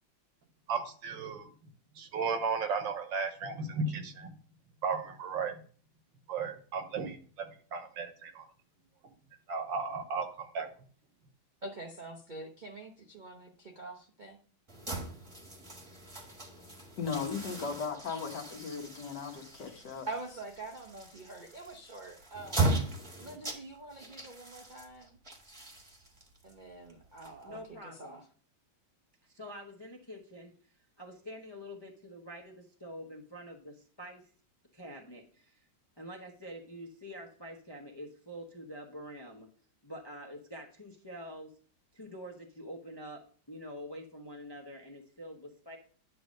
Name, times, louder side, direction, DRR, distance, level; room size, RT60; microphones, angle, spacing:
voice 1, 0.7-1.5 2.0-4.3 4.8-5.6 6.3-8.4 9.5-10.7, right 4 dB, 70° right, 1.6 m, -35 dB
voice 2, 11.6-14.4 19.8-22.7 23.2-25.2 26.4-28.3, right 2 dB, 50° right, 0.5 m, -45 dB
sound 1, 14.7-27.8, right 3 dB, 15° right, 1.2 m, -38 dB
voice 3, 17.0-20.1, left 5 dB, 60° left, 1.7 m, -37 dB
voice 4, 27.4-28.2 29.2-30.5 31.0-34.3 34.7-35.7 36.0-39.5 39.8-41.5 41.9-43.2 43.5-45.8, equal, 25° left, 0.5 m, -46 dB
10.0 x 3.4 x 6.4 m
omnidirectional pair, 2.2 m